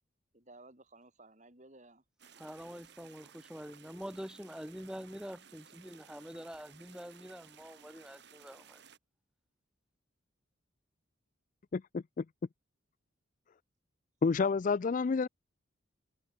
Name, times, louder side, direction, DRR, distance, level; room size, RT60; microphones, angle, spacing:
voice 1, 0.3-2.0 14.3-14.6, right 2 dB, 35° right, 4.1 m, -57 dB
sound 1, 2.2-9.0, right 7 dB, 55° right, 2.6 m, -58 dB
voice 2, 2.4-8.8, equal, 5° right, 3.2 m, -46 dB
voice 3, 11.7-12.2 14.2-15.3, left 4 dB, 40° left, 0.4 m, -29 dB
head